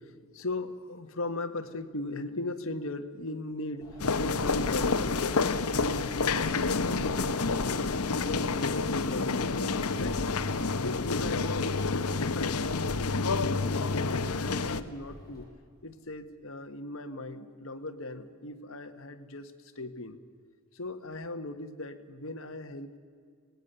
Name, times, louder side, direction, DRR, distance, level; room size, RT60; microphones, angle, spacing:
voice 1, 0.0-5.2 5.5-7.9 8.2-10.2 10.8-15.5 15.8-20.2 20.7-23.0, left 2 dB, 60° left, 7 dB, 1.4 m, -38 dB
Wind, 3.8-15.4, equal, 15° left, 5.6 m, -46 dB
sound 1, 4.0-14.8, left 4 dB, 85° left, 1.0 m, -29 dB
25.5 x 18.5 x 6.8 m, 2.1 s
head